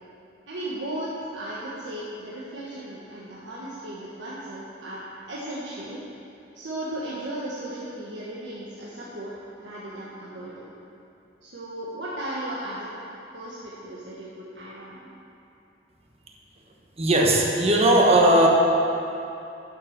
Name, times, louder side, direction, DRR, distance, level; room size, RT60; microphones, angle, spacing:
voice 1, 0.5-6.0 6.5-9.3 9.6-10.7 11.4-12.9 13.3-15.2, right 1 dB, 80° right, -7 dB, 1.3 m, -36 dB
voice 2, 17.0-18.5, right 1 dB, 35° right, -1 dB, 1.2 m, -18 dB
9.8 x 6.8 x 5.9 m, 2.7 s
head